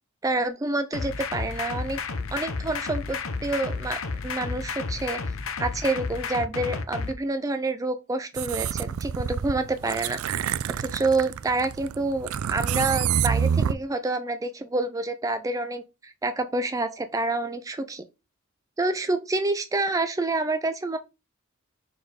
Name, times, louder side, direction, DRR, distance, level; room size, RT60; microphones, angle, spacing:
voice 1, 0.2-2.0 2.3-4.0 4.2-5.2 5.6-10.4 10.8-18.0 18.8-21.0, right 2 dB, 15° right, 0.3 m, -28 dB
sound 1, 0.9-7.1, left 4 dB, 75° left, 0.8 m, -32 dB
sound 2, 8.4-13.7, right 8 dB, 80° right, 0.4 m, -27 dB
4.9 x 4.2 x 5.0 m
head